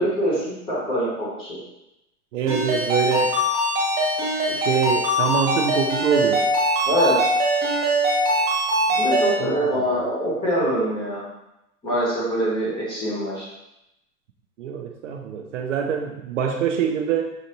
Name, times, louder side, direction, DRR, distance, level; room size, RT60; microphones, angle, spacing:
voice 1, 0.0-1.6 6.8-7.2 8.9-11.2 11.8-13.5, equal, 10° left, -7 dB, 0.9 m, -24 dB
voice 2, 2.3-3.4 4.5-6.5 9.4-10.0 14.6-17.4, right 7 dB, 55° right, 3 dB, 0.5 m, -25 dB
Ringtone, 2.5-9.3, equal, 20° right, 1.3 m, -22 dB
6.3 x 2.7 x 2.8 m, 0.88 s
supercardioid pair, 165°, 45 cm